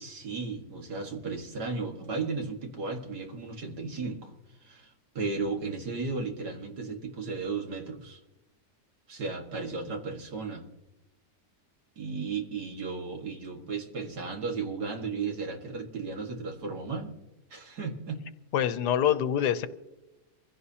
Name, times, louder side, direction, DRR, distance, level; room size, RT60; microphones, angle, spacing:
voice 1, 0.0-4.3 4.6-8.2 9.1-10.7 12.0-17.1 17.5-18.2, right 4 dB, 75° right, 2 dB, 2.4 m, -35 dB
voice 2, 18.5-19.7, left 9 dB, 85° left, 11 dB, 1.3 m, -25 dB
24.5 x 16.0 x 2.8 m, 0.99 s
omnidirectional pair, 1.7 m